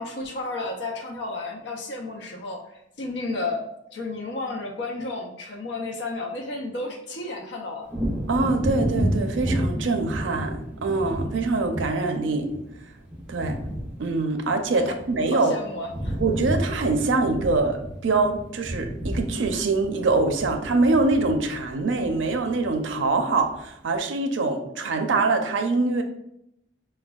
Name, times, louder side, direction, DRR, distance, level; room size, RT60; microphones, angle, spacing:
voice 1, 0.0-3.6 3.9-7.9 14.7-15.0 15.3-16.2, left 2 dB, 65° left, 0 dB, 0.5 m, -32 dB
Wind / Thunder, 7.9-15.5 15.7-23.0 23.4-23.5, equal, 10° right, 0.6 m, -31 dB
voice 2, 8.3-12.5 13.3-13.6 14.0-15.5 16.2-26.0, right 3 dB, 85° right, 6 dB, 0.4 m, -24 dB
4.9 x 2.2 x 2.2 m, 0.81 s
head